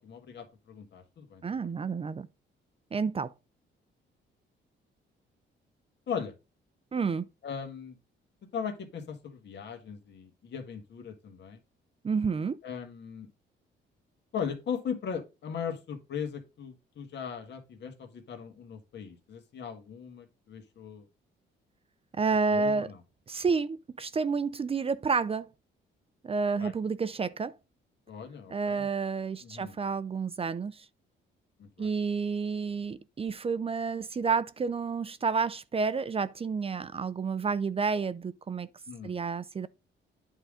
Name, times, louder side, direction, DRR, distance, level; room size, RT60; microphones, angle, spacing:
voice 1, 0.0-1.4 6.1-6.3 7.4-7.9 8.5-11.6 12.6-13.3 14.3-21.0 22.5-23.0 26.6-26.7 28.1-28.9 29.4-29.7 31.6-31.9 38.9-39.2, left 7 dB, 60° left, 1.8 m, -38 dB
voice 2, 1.4-2.3 2.9-3.3 6.9-7.2 12.0-12.6 22.2-22.9 23.3-25.5 26.2-27.5 28.5-30.9 31.8-38.7 39.0-39.7, right 5 dB, 30° right, 0.5 m, -30 dB
9.1 x 3.8 x 5.0 m
cardioid pair, 90°, 20 cm